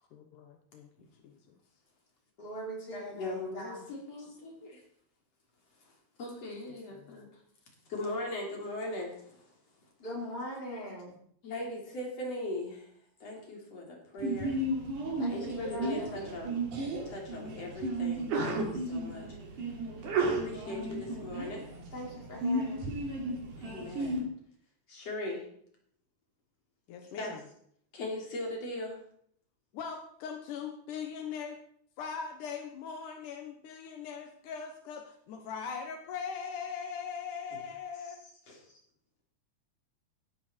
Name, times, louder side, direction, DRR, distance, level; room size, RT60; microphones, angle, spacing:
voice 1, 0.1-0.9 1.2-1.4 6.9-7.2 26.9-27.4 29.7-31.6 32.0-35.0 35.3-38.2, left 6 dB, 80° left, 4 dB, 2.8 m, -40 dB
voice 2, 2.4-3.9 10.0-11.2 15.2-16.3 21.9-23.0, equal, 30° left, -3 dB, 5.4 m, -41 dB
voice 3, 2.9-4.8 6.2-7.3 7.9-9.4 11.4-12.9 13.2-14.6 15.3-16.6 17.1-19.3 20.2-21.7 23.6-24.2 24.9-25.4 27.2-27.3 27.9-29.0, left 1 dB, 55° left, 0 dB, 4.3 m, -39 dB
Sneeze, 14.2-24.2, right 2 dB, 80° right, 4.4 m, -34 dB
16.5 x 13.0 x 4.5 m, 0.67 s
omnidirectional pair, 3.6 m